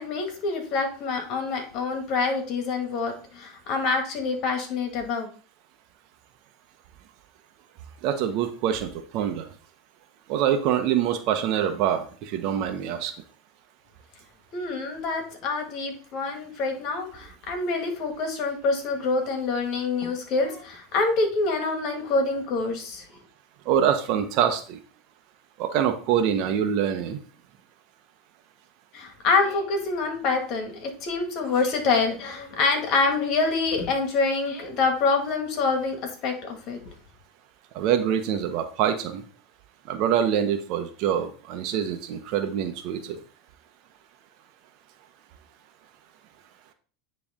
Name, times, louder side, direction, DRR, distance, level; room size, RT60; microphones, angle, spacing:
voice 1, 0.0-5.3 14.5-23.0 28.9-36.0 36.2-36.8, left 4 dB, 55° left, 4 dB, 2.0 m, -26 dB
voice 2, 8.0-9.5 10.3-13.1 23.7-24.8 25.6-27.2 37.7-39.2 39.9-43.2, right 9 dB, 60° right, 7 dB, 1.1 m, -25 dB
9.8 x 3.4 x 3.7 m, 0.41 s
hypercardioid pair, 100°, 0 cm